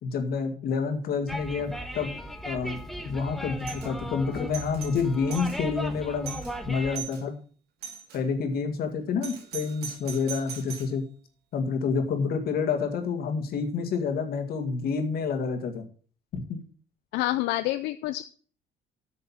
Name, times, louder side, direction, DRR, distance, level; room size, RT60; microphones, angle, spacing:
voice 1, 0.0-2.1 2.4-2.8 3.0-6.4 6.7-7.3 8.1-11.0 11.5-15.8 16.3-16.6, left 5 dB, 65° left, 6 dB, 2.3 m, -28 dB
sound 1, 1.3-7.0, equal, ahead, 1.3 m, -37 dB
Doorbell, 3.6-3.9 4.3-5.6 6.0-6.1 6.2-6.5 6.9-7.2 7.8-8.2 9.2-11.0, right 7 dB, 75° right, 2.7 m, -40 dB
voice 2, 17.1-18.2, left 15 dB, 90° left, 11 dB, 0.5 m, -27 dB
9.0 x 6.5 x 7.4 m, 0.43 s
cardioid pair, 110°, 17 cm